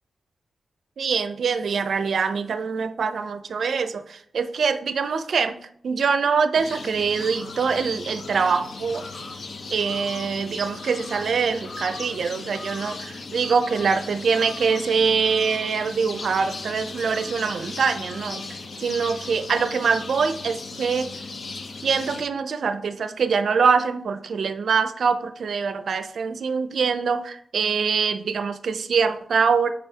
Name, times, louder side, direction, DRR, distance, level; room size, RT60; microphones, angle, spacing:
voice 1, 1.0-9.1 9.7-18.4 18.8-21.2 21.8-29.7, right 5 dB, 70° right, 0.4 m, -24 dB
sound 1, 6.6-22.2, left 3 dB, 60° left, 0.6 m, -37 dB
6.9 x 4.8 x 2.8 m
wide cardioid pair, 155°, 0 cm